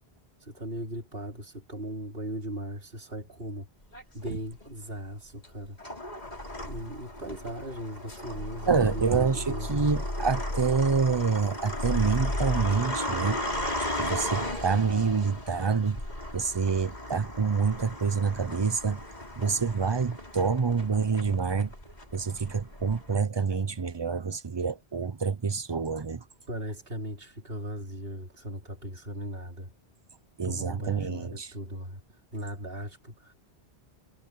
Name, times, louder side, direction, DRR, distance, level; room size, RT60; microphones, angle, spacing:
voice 1, 0.4-3.7 4.1-5.8 6.6-9.9 26.5-29.7 30.4-32.0 32.3-33.3, right 1 dB, 60° right, 4.3 m, -38 dB
sound 1, 3.9-4.7 5.4-23.2, left 1 dB, 40° left, 5.1 m, -35 dB
voice 2, 8.7-13.4 14.0-16.0 16.3-19.0 19.4-21.7 22.1-26.2 30.4-31.5, right 5 dB, 30° right, 0.7 m, -27 dB
omnidirectional pair, 1.1 m